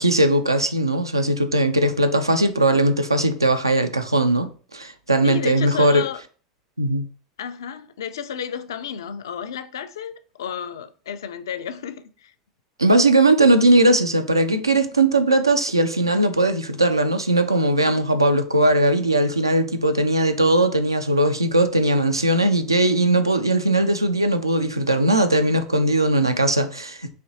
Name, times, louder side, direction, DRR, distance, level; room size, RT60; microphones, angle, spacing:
voice 1, 0.0-6.0 6.8-7.0 12.8-27.1, right 1 dB, 90° right, 0.4 m, -19 dB
voice 2, 5.2-6.2 7.4-12.3, left 8 dB, 70° left, 0.4 m, -32 dB
4.2 x 2.9 x 2.7 m
figure-of-eight pair, 80°, 2 cm